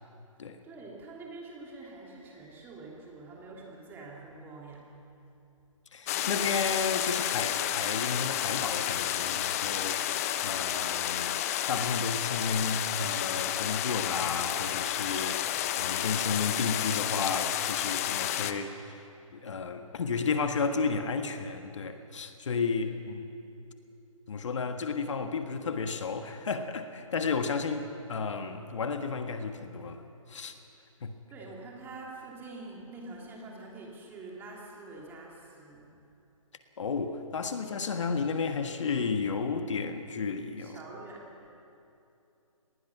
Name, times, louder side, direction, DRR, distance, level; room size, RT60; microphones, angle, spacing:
voice 1, 0.6-4.9 31.3-35.9 40.6-41.2, right 3 dB, 10° right, -2 dB, 2.8 m, -45 dB
voice 2, 5.9-11.3 11.7-19.0 19.3-23.2 24.3-30.0 30.3-30.6 31.0-31.2 36.8-40.8, left 5 dB, 60° left, 7 dB, 1.6 m, -32 dB
sound 1, 6.1-18.5, left 11 dB, 25° left, 0.8 m, -31 dB
26.0 x 19.5 x 6.0 m, 2.7 s
hypercardioid pair, 150°, 18 cm